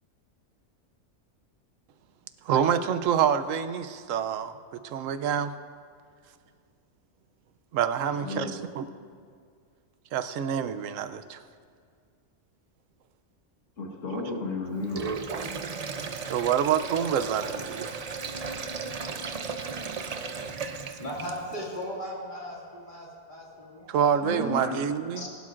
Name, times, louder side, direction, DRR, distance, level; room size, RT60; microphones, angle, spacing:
voice 1, 2.5-5.5 7.7-8.9 10.1-11.4 16.3-18.0 23.9-25.3, right 8 dB, 90° right, 11 dB, 1.0 m, -27 dB
voice 2, 8.2-8.5 13.8-15.0 24.2-24.8 25.2-25.3, left 2 dB, 80° left, -1 dB, 1.8 m, -32 dB
Sink (filling or washing), 14.8-21.6, right 5 dB, 45° right, 0.5 m, -35 dB
voice 3, 20.4-24.6 25.1-25.2, equal, 40° left, -5 dB, 2.5 m, -39 dB
21.0 x 11.5 x 2.5 m, 2.1 s
omnidirectional pair, 1.3 m